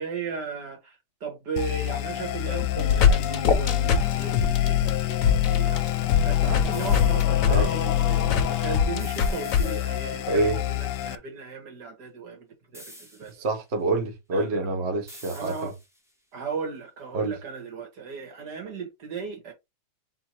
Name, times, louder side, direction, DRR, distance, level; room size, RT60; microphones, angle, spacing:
voice 1, 0.0-13.3 14.3-14.7 15.3-15.8 16.3-19.5, right 5 dB, 70° right, 2.2 m, -36 dB
sound 1, 1.6-11.2, left 13 dB, 80° left, 1.2 m, -26 dB
sound 2, 2.6-9.6, left 7 dB, 60° left, 1.0 m, -23 dB
sound 3, 6.7-7.5 9.0-10.4 12.7-13.5 15.1-16.1, equal, ahead, 0.8 m, -47 dB
voice 2, 10.3-10.6 13.4-15.7 17.1-17.3, right 2 dB, 45° right, 1.1 m, -26 dB
3.9 x 2.8 x 4.4 m
omnidirectional pair, 1.8 m